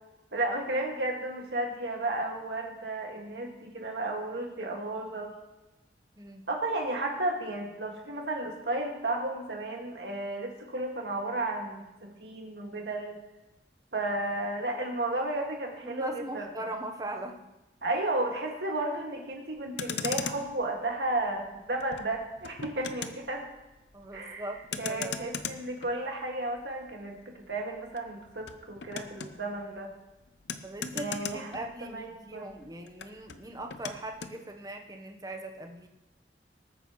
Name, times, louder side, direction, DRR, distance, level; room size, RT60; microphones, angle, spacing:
voice 1, 0.3-5.3 6.5-13.2 13.9-16.6 17.8-23.5 24.1-24.5 24.8-29.9 30.9-31.6 31.9-32.5, right 2 dB, 75° right, 1 dB, 2.1 m, -33 dB
voice 2, 15.8-17.5 23.9-25.3 30.6-35.9, right 1 dB, 20° right, 3 dB, 1.0 m, -40 dB
Motor vehicle (road), 19.6-32.2 32.5-34.4, left 6 dB, 80° left, 0.7 m, -40 dB
20.0 x 9.0 x 3.1 m, 1.0 s
head